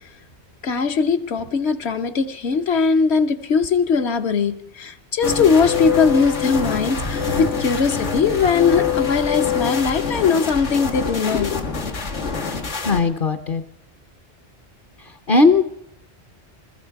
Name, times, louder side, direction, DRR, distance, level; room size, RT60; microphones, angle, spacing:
voice 1, 0.6-11.6, left 5 dB, 70° left, 7 dB, 1.2 m, -20 dB
sound 1, 5.2-13.0, left 6 dB, 90° left, 2.0 m, -25 dB
voice 2, 12.8-13.6 15.3-15.6, left 3 dB, 55° left, 8 dB, 0.9 m, -17 dB
21.5 x 14.0 x 4.7 m, 0.74 s
omnidirectional pair, 1.2 m